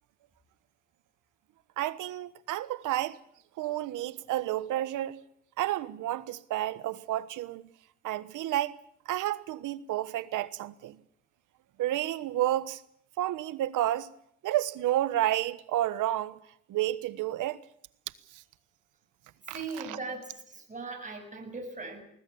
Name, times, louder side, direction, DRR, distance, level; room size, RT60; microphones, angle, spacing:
voice 1, 1.8-3.2 3.6-5.2 5.6-7.7 8.0-8.8 9.0-11.0 11.8-12.8 13.2-14.1 14.4-16.4 16.7-17.6 18.3-18.4 19.5-19.6 19.9-20.0, right 13 dB, 85° right, 1.3 m, -30 dB
voice 2, 19.5-22.0, right 3 dB, 25° right, 7.2 m, -39 dB
20.5 x 20.0 x 8.7 m
cardioid pair, 90°, 30 cm